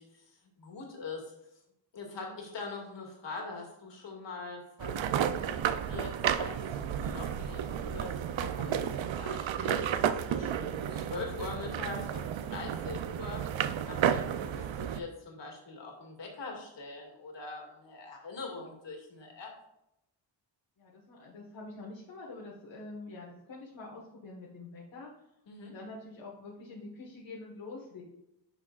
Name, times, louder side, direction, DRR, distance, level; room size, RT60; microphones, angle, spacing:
voice 1, 0.0-1.3 1.9-5.3 5.9-10.0 10.3-13.4 13.9-19.5 25.5-25.7, left 3 dB, 70° left, 0 dB, 2.3 m, -43 dB
voice 2, 2.1-2.4 20.8-25.1 25.6-28.0, left 3 dB, 85° left, -4 dB, 1.6 m, -46 dB
sound 1, 4.8-15.0, right 9 dB, 90° right, 0.6 m, -32 dB
11.0 x 6.0 x 2.4 m, 0.86 s
wide cardioid pair, 180°, 45 cm